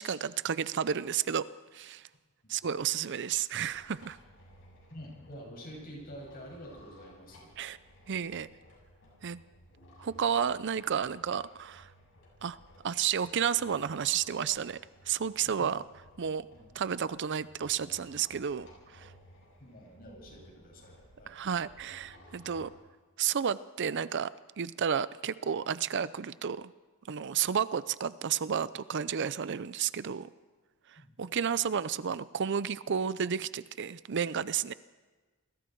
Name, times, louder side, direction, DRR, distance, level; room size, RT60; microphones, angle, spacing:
voice 1, 0.0-1.4 1.7-2.0 2.5-4.2 7.6-7.8 8.1-8.5 9.2-9.4 10.0-11.9 12.4-12.6 12.8-14.8 15.1-15.8 16.2-16.5 16.7-18.7 18.9-19.1 21.3-22.7 23.2-24.3 24.6-26.7 27.1-30.3 31.2-34.7, right 7 dB, 55° right, 16 dB, 0.5 m, -31 dB
sound 1, 3.6-22.7, equal, 65° left, 7.3 m, -57 dB
voice 2, 4.9-7.5 15.6-15.7 16.5-16.7 19.6-21.4 31.0-31.1, equal, 45° left, 0 dB, 7.2 m, -47 dB
28.5 x 20.5 x 4.6 m, 1.3 s
head